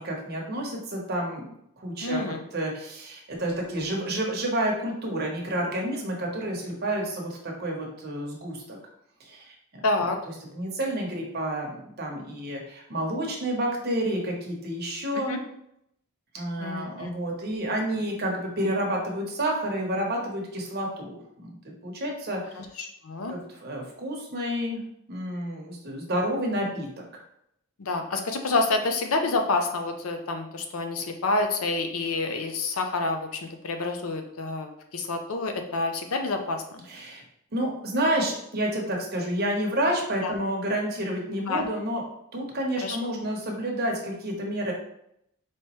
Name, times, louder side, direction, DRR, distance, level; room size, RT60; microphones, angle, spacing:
voice 1, 0.0-1.5 1.8-8.8 9.2-9.5 10.5-15.4 16.3-22.4 23.3-24.8 25.1-27.0 36.9-37.2 37.5-42.0 42.3-44.7, right 1 dB, 45° right, 0 dB, 1.0 m, -29 dB
voice 2, 2.0-2.4 9.8-10.2 15.1-15.4 16.6-17.1 22.6-23.3 27.8-36.8 40.2-40.4 41.5-41.6 42.8-43.0, left 3 dB, 70° left, 5 dB, 0.6 m, -28 dB
4.6 x 3.0 x 3.1 m, 0.76 s
head